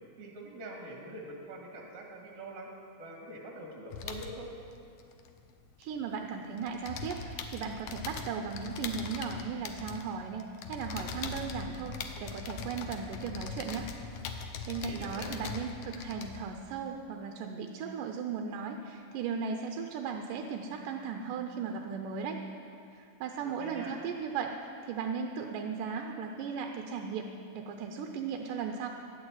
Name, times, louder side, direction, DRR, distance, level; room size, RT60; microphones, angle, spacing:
voice 1, 0.2-2.7 3.0-4.5 14.8-15.3 23.4-23.9, right 1 dB, 60° right, -1 dB, 3.1 m, -44 dB
sound 1, 3.9-6.2 6.4-16.6, left 5 dB, 70° left, 1.5 m, -41 dB
voice 2, 5.8-13.9 14.7-22.4 22.9-27.3 27.5-28.9, right 6 dB, 80° right, 3 dB, 2.3 m, -37 dB
12.0 x 8.7 x 8.9 m, 2.4 s
omnidirectional pair, 3.8 m